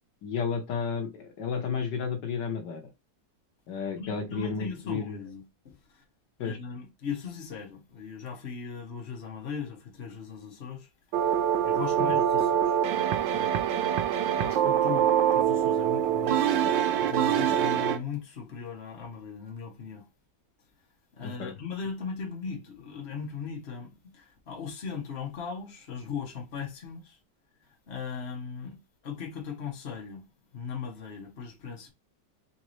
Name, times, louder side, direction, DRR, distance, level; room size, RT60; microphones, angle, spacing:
voice 1, 0.2-2.8 3.7-5.2 6.4-6.6 12.0-12.1 21.2-21.5, left 6 dB, 75° left, 1.5 m, -32 dB
voice 2, 3.9-6.0 6.4-10.9 11.6-12.8 13.3-13.5 14.3-20.1 21.1-27.2 27.9-28.8 29.0-30.3 30.5-31.9, left 6 dB, 40° left, 1.3 m, -38 dB
sound 1, 11.1-18.0, right 9 dB, 85° right, 1.3 m, -25 dB
4.1 x 3.7 x 3.1 m
omnidirectional pair, 1.9 m